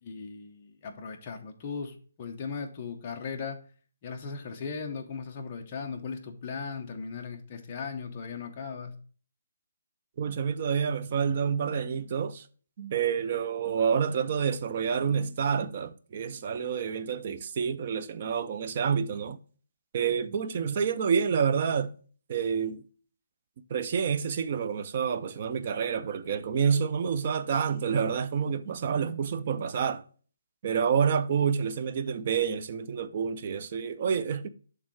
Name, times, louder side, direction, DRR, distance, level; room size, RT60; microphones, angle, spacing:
voice 1, 0.0-3.6 4.0-8.9, left 5 dB, 20° left, 0.7 m, -38 dB
voice 2, 10.2-12.5 12.8-19.4 19.9-21.9 22.3-22.8 23.7-30.0 30.6-34.5, right 7 dB, 25° right, 0.4 m, -28 dB
6.3 x 3.7 x 4.5 m
hypercardioid pair, 180°, 0 cm